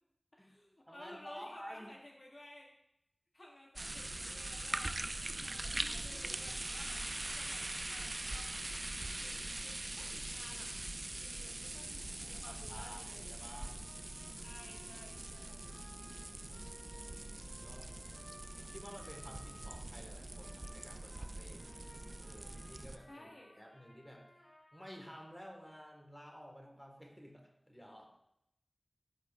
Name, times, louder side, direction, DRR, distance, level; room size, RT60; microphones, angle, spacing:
voice 1, 0.3-2.8 3.3-5.0 5.4-7.0 7.3-8.8 9.0-10.8 11.2-13.4 14.4-15.8 23.1-23.6, left 1 dB, 65° left, -1 dB, 0.9 m, -55 dB
voice 2, 0.9-1.9 11.7-13.8 16.5-16.7 17.0-17.9 18.5-21.7 22.2-23.3 23.6-28.2, equal, 5° left, 0 dB, 1.6 m, -53 dB
sound 1, 3.8-23.0, right 2 dB, 50° right, 0.3 m, -43 dB
sound 2, 11.6-22.6, right 1 dB, 80° right, 1.3 m, -70 dB
Trumpet, 13.4-19.8 20.3-25.6, left 1 dB, 80° left, 1.7 m, -60 dB
12.5 x 5.0 x 2.4 m, 0.81 s
wide cardioid pair, 50°, 0 cm